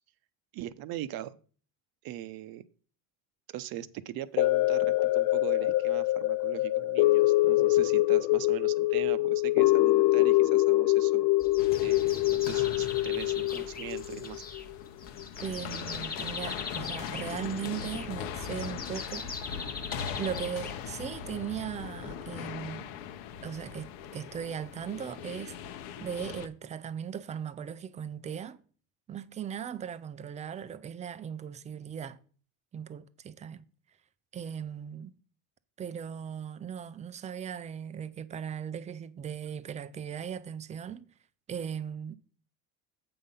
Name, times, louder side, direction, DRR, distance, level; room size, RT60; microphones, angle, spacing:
voice 1, 0.5-1.4 2.0-2.6 3.5-11.3 11.8-14.4, right 13 dB, 50° right, 0.7 m, -40 dB
sound 1, 4.4-14.7 15.2-15.3, left 18 dB, 55° left, 0.5 m, -25 dB
sound 2, 11.4-21.2, left 4 dB, 20° left, 1.0 m, -42 dB
sound 3, 11.6-26.5, left 8 dB, 80° left, 0.9 m, -40 dB
voice 2, 15.4-19.3 20.2-22.9 23.4-25.6 26.0-28.6 29.1-32.2 32.7-33.7 34.3-35.2 35.8-41.1 41.5-42.2, right 8 dB, 15° right, 0.3 m, -38 dB
7.8 x 5.7 x 5.3 m
supercardioid pair, 120°, 46 cm